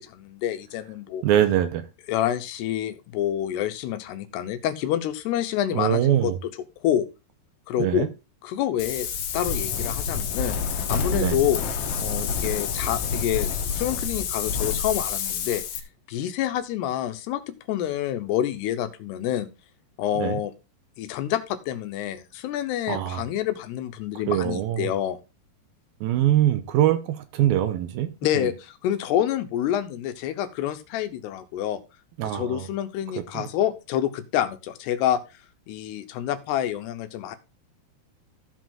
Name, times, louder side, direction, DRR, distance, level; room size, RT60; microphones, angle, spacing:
voice 1, 0.0-1.2 2.1-6.3 6.8-7.1 7.7-8.1 8.4-9.1 9.3-10.6 10.9-11.6 12.0-15.6 16.1-19.5 20.0-20.5 21.0-25.2 28.2-31.8 32.2-35.2 35.7-37.4, left 11 dB, 85° left, 10 dB, 3.0 m, -27 dB
voice 2, 1.2-1.8 5.7-6.4 7.8-8.1 11.1-11.4 20.2-20.4 22.9-23.2 24.3-24.9 26.0-28.5 32.2-32.7 33.3-33.4, right 11 dB, 75° right, 10 dB, 2.4 m, -23 dB
Wind, 8.8-15.8, left 6 dB, 70° left, 3.0 m, -28 dB
15.0 x 5.1 x 3.8 m, 0.28 s
omnidirectional pair, 4.7 m